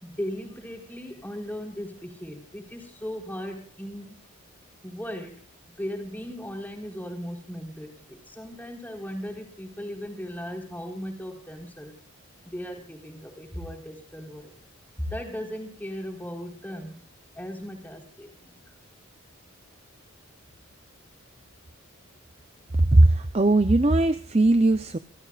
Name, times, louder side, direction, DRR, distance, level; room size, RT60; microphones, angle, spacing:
voice 1, 0.0-4.2 4.8-5.4 5.8-12.0 12.5-14.5 15.0-17.0 17.4-18.3, equal, 10° left, 2 dB, 4.2 m, -37 dB
voice 2, 22.8-25.0, right 2 dB, 30° right, 10 dB, 0.6 m, -19 dB
28.5 x 14.0 x 2.5 m, 0.41 s
head